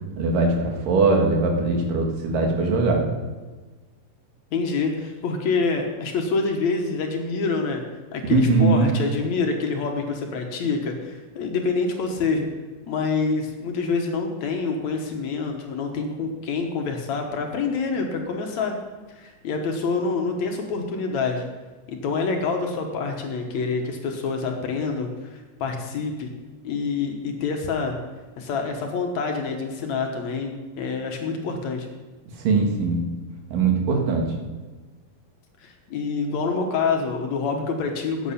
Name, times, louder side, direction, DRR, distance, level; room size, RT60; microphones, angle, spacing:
voice 1, 0.2-3.0 8.3-8.9 32.4-33.0 33.5-34.2, right 3 dB, 75° right, 1 dB, 3.4 m, -20 dB
voice 2, 4.5-7.8 8.1-12.5 12.9-18.8 19.1-21.4 21.9-26.3 26.6-28.0 28.4-31.9 35.6-38.3, left 4 dB, 65° left, 3 dB, 2.2 m, -26 dB
12.0 x 8.6 x 5.6 m, 1.3 s
omnidirectional pair, 3.9 m